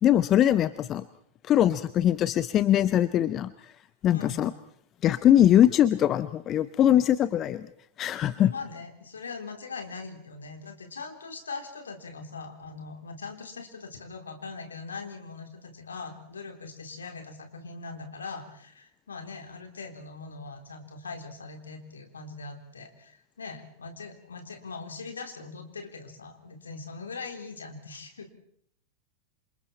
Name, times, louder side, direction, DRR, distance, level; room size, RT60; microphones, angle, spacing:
voice 1, 0.0-1.0 1.4-3.7 4.0-4.5 5.0-7.7 8.0-8.5, left 11 dB, 30° left, 15 dB, 0.9 m, -22 dB
voice 2, 4.1-4.5 8.4-28.3, left 4 dB, 70° left, 6 dB, 3.6 m, -41 dB
28.0 x 27.0 x 4.4 m, 0.67 s
figure-of-eight pair, 90°, 0 cm